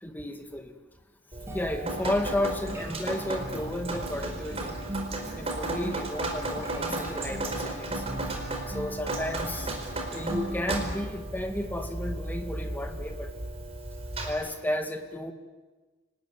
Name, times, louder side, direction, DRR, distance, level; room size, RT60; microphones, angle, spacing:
voice 1, 0.0-0.7 1.5-4.8 5.3-8.0 8.7-9.8 10.1-13.3 14.2-15.3, left 1 dB, 10° left, 5 dB, 2.0 m, -33 dB
Drip, 1.3-14.3, right 2 dB, 30° right, 4.7 m, -34 dB
sound 1, 1.5-11.1, right 1 dB, 15° right, 5.9 m, -41 dB
28.5 x 19.5 x 9.6 m, 1.3 s
head